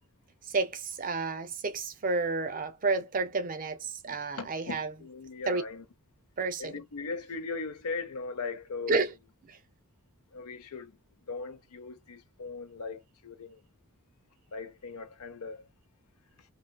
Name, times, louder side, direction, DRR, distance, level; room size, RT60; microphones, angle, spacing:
voice 1, 0.5-4.9 5.5-5.6 6.4-6.7 8.9-9.1, right 3 dB, 40° right, 0.6 m, -30 dB
voice 2, 4.1-5.8 6.6-9.1 10.3-11.0 11.3-13.6 14.5-15.7, left 4 dB, 85° left, 0.7 m, -39 dB
2.6 x 2.5 x 2.3 m
head